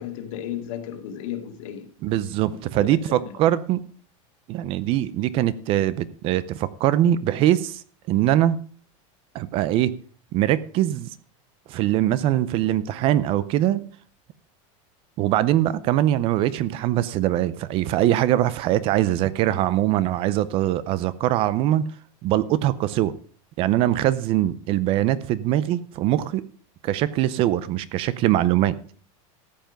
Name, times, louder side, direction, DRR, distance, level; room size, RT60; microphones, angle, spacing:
voice 1, 0.0-1.9 2.8-3.3, left 10 dB, 70° left, 2.2 m, -34 dB
voice 2, 2.0-3.8 4.5-7.8 8.1-8.6 9.3-9.9 10.3-11.1 11.7-13.8 15.2-21.8 22.2-23.1 23.6-26.4 26.8-28.8, right 13 dB, 35° right, 0.6 m, -22 dB
13.5 x 8.1 x 5.1 m
supercardioid pair, 175°, 17 cm